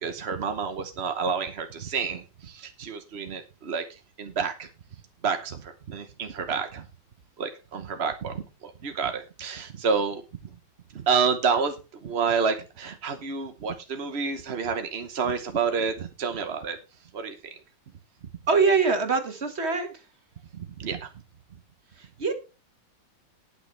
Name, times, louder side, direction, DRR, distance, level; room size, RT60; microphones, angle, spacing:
voice 1, 0.0-4.7 5.2-6.8 7.4-10.2 10.9-11.8 12.0-16.8 17.1-17.6 20.5-21.1, right 5 dB, 50° right, 7 dB, 0.8 m, -29 dB
voice 2, 18.5-19.9 22.2-22.3, right 4 dB, 30° right, 6 dB, 1.9 m, -23 dB
19.0 x 6.4 x 3.3 m, 0.30 s
omnidirectional pair, 2.3 m